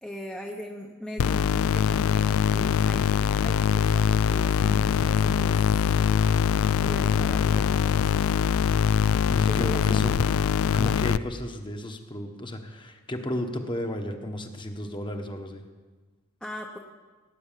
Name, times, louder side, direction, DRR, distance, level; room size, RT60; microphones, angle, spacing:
voice 1, 0.0-6.1 6.8-8.2 9.5-10.1 16.4-16.8, equal, 5° left, 0 dB, 1.0 m, -39 dB
sound 1, 1.2-11.2, left 7 dB, 70° left, 0.4 m, -23 dB
voice 2, 9.3-10.4 10.7-15.6, left 1 dB, 25° left, 5 dB, 1.3 m, -34 dB
18.0 x 9.6 x 7.5 m, 1.3 s
head